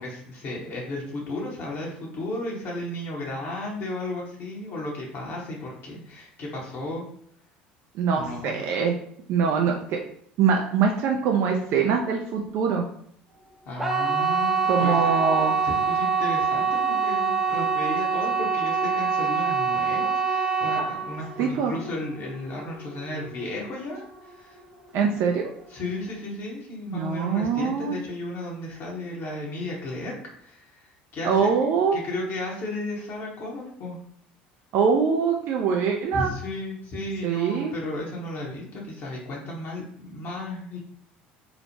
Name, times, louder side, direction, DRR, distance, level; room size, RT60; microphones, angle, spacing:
voice 1, 0.0-7.0 8.1-8.5 13.6-24.6 25.7-31.5 31.9-34.0 36.1-40.8, left 1 dB, 50° left, -3 dB, 0.8 m, -34 dB
voice 2, 7.9-8.9 9.3-10.0 10.4-12.8 14.7-15.5 21.4-21.8 24.9-25.5 26.9-28.0 31.2-32.0 34.7-36.3 37.2-37.7, right 6 dB, 55° right, 1 dB, 0.3 m, -23 dB
sound 1, 13.7-24.6 24.9-25.4 25.8-25.9, right 5 dB, 5° right, 0.6 m, -25 dB
2.9 x 2.0 x 2.7 m, 0.65 s
hypercardioid pair, 65°, 5 cm